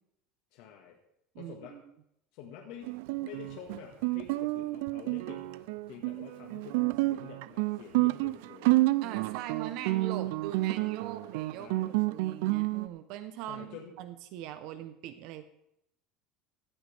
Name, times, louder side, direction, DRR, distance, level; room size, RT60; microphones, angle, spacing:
voice 1, 0.5-1.0 1.4-1.8 2.3-2.9 3.2-8.7 11.6-11.9 13.5-13.9, left 8 dB, 60° left, 0 dB, 1.8 m, -48 dB
voice 2, 1.3-1.8 9.0-15.4, right 12 dB, 55° right, 10 dB, 0.9 m, -41 dB
Guitar, 2.8-12.9, right 20 dB, 75° right, 0.4 m, -30 dB
16.0 x 13.5 x 3.5 m, 0.79 s
cardioid pair, 170°, 0 cm